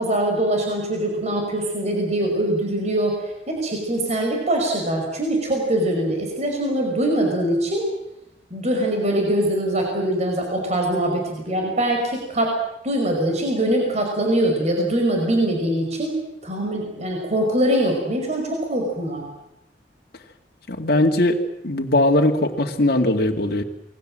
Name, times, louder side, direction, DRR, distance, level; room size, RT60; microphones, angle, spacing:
voice 1, 0.0-7.9 8.5-12.5 12.8-16.2 16.4-19.3, right 1 dB, 40° right, 1 dB, 5.6 m, -23 dB
voice 2, 20.7-21.4 21.6-23.6, left 1 dB, 55° left, 2 dB, 2.3 m, -19 dB
28.0 x 21.5 x 7.7 m, 0.83 s
head